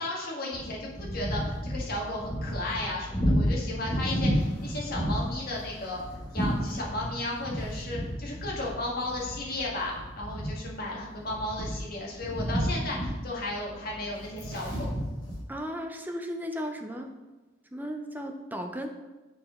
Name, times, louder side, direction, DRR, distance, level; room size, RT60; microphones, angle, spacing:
voice 1, 0.0-6.0 6.3-14.9, left 2 dB, 55° left, -3 dB, 1.6 m, -34 dB
sound 1, 0.5-15.4, equal, 20° left, 1.8 m, -32 dB
voice 2, 15.5-17.1 17.7-18.9, equal, 10° right, 4 dB, 0.6 m, -35 dB
7.3 x 4.9 x 3.6 m, 1.1 s
head